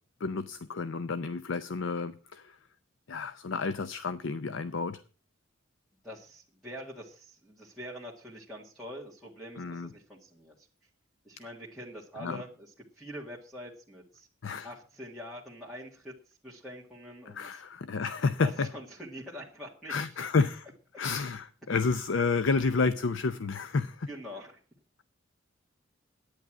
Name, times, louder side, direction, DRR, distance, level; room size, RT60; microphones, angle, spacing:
voice 1, 0.2-2.6 3.1-5.0 9.6-9.9 12.2-12.4 14.4-14.7 17.3-18.7 19.9-20.7 21.0-24.1, left 4 dB, 70° left, 13 dB, 0.6 m, -30 dB
voice 2, 6.0-10.7 11.2-14.3 14.6-17.6 18.4-20.2 24.1-24.6, equal, ahead, -7 dB, 1.9 m, -45 dB
10.5 x 9.4 x 6.0 m, 0.39 s
head